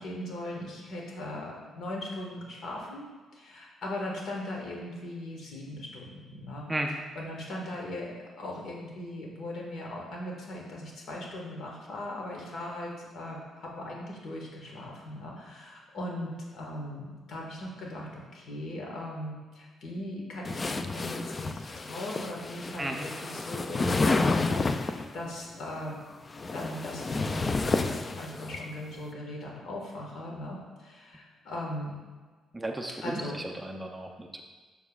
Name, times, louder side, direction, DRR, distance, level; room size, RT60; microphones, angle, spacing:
voice 1, 0.0-6.6 7.1-26.0 26.4-32.0 33.0-33.4, left 1 dB, 65° left, -2 dB, 1.6 m, -39 dB
sound 1, 20.4-25.1 26.1-28.6, left 3 dB, 30° left, 0.3 m, -30 dB
voice 2, 32.5-34.4, right 1 dB, 15° right, 3 dB, 0.6 m, -34 dB
7.0 x 6.8 x 2.4 m, 1.4 s
cardioid pair, 90°, 0 cm